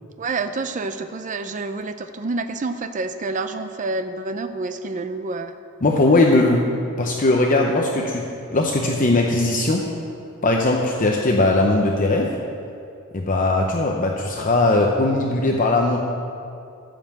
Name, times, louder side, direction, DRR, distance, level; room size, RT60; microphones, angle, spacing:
voice 1, 0.2-5.6, right 3 dB, 35° right, 9 dB, 0.5 m, -28 dB
voice 2, 5.8-6.7 7.0-9.9 10.4-12.4 13.1-16.0, left 2 dB, 40° left, 1 dB, 0.8 m, -19 dB
14.0 x 5.6 x 7.4 m, 2.5 s
head